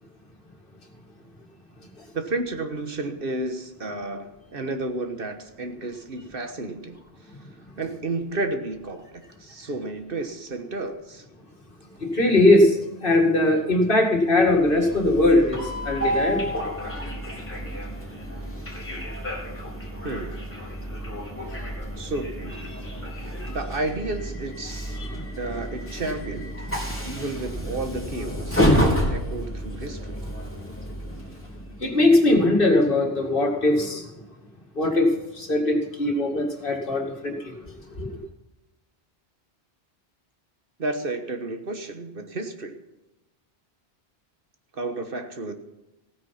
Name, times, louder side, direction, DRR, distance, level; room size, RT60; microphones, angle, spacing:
voice 1, 2.1-7.0 7.8-11.2 20.0-20.5 22.0-22.7 23.1-24.9 25.4-26.7 27.0-30.2 40.8-42.8 44.7-45.5, right 2 dB, 60° right, 7 dB, 1.5 m, -32 dB
voice 2, 12.0-16.5 25.0-25.1 31.8-34.1 34.8-37.5 38.0-38.1, left 2 dB, 55° left, 2 dB, 2.3 m, -20 dB
Train, 14.5-31.8, equal, 10° left, 3.5 m, -29 dB
16.0 x 9.6 x 5.8 m, 1.0 s
omnidirectional pair, 1.1 m